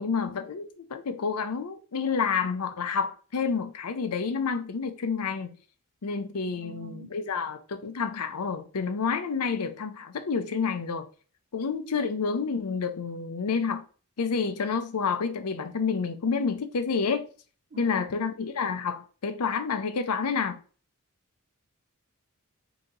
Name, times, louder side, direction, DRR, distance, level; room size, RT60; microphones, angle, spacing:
voice 1, 0.0-5.5 6.0-11.1 11.5-13.8 14.2-17.3 17.8-20.6, left 5 dB, 85° left, 0.6 m, -29 dB
voice 2, 6.5-7.1 17.7-18.2, right 4 dB, 40° right, 0.4 m, -46 dB
4.0 x 2.8 x 3.7 m
head